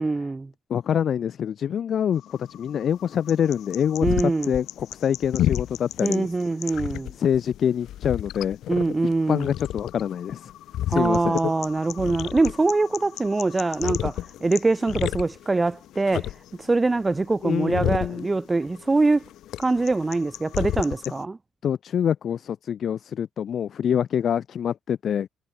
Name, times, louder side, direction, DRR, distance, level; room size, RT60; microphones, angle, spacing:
voice 1, 0.0-0.5 4.0-4.5 6.0-7.1 8.7-9.5 10.9-16.3 16.6-19.2 19.6-21.4, right 3 dB, 20° right, 0.6 m, -23 dB
voice 2, 0.7-6.3 7.2-8.6 9.3-10.5 10.9-11.4 17.4-18.3 21.6-25.3, left 8 dB, 60° left, 0.4 m, -25 dB
sound 1, 2.2-21.2, left 12 dB, 80° left, 0.8 m, -32 dB
cardioid pair, 90°, 0 cm